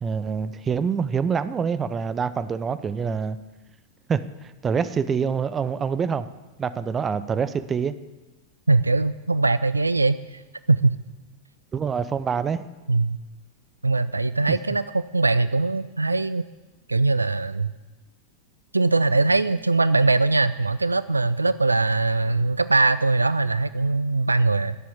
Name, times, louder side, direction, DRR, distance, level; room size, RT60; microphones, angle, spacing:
voice 1, 0.0-3.4 4.1-4.2 4.6-6.3 6.6-7.9 11.7-12.6 14.5-14.6, right 6 dB, 20° right, 13 dB, 0.6 m, -25 dB
voice 2, 8.7-10.4 10.7-11.0 12.9-13.2 13.8-16.5 16.9-17.7 18.7-24.8, right 3 dB, 80° right, 15 dB, 0.3 m, -21 dB
10.0 x 7.6 x 8.7 m, 1.2 s
figure-of-eight pair, 90°, 0 cm